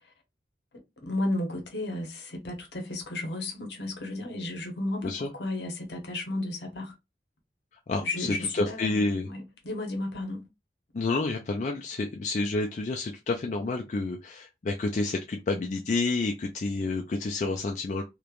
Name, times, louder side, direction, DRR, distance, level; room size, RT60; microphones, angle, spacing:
voice 1, 1.0-6.9 8.0-10.4, left 2 dB, 75° left, 0.9 m, -33 dB
voice 2, 7.9-9.3 10.9-18.0, left 3 dB, 40° left, 0.3 m, -29 dB
3.1 x 2.1 x 2.4 m
head